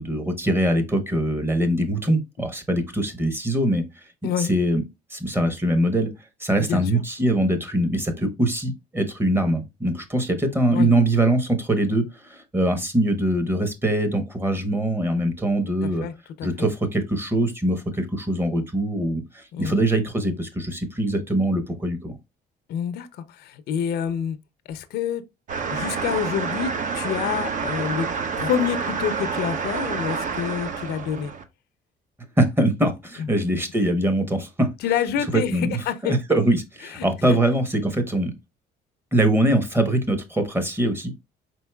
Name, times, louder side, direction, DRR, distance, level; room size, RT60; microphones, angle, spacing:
voice 1, 0.0-3.8 4.4-4.8 5.1-6.1 6.4-16.1 16.4-22.2 32.4-34.7 35.3-35.7 36.0-38.3 39.1-41.1, right 1 dB, 15° right, 0.9 m, -23 dB
voice 2, 15.8-16.5 19.5-19.7 22.7-24.4 24.7-25.2 25.7-28.1 28.4-31.3 33.2-33.3 34.8-35.6 35.9-36.2 36.9-37.4, left 8 dB, 70° left, 0.6 m, -27 dB
sound 1, 25.5-31.4, right 5 dB, 50° right, 0.7 m, -28 dB
4.5 x 3.9 x 2.2 m
cardioid pair, 110°, 17 cm